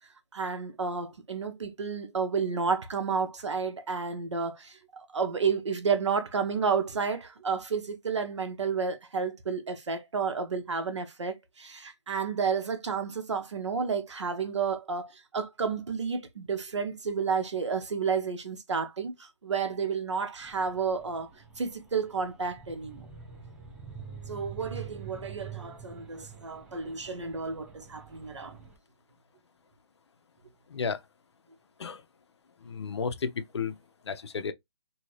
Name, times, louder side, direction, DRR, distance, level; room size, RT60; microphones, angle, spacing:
voice 1, 0.3-21.3 21.6-23.1 24.3-28.6, right 5 dB, 85° right, 0.9 m, -31 dB
sound 1, 20.4-28.8, right 6 dB, 5° right, 0.4 m, -46 dB
voice 2, 30.7-31.0 31.8-32.0 32.6-33.8 34.1-34.5, left 5 dB, 70° left, 0.6 m, -32 dB
2.7 x 2.7 x 3.1 m
hypercardioid pair, 160°, 15 cm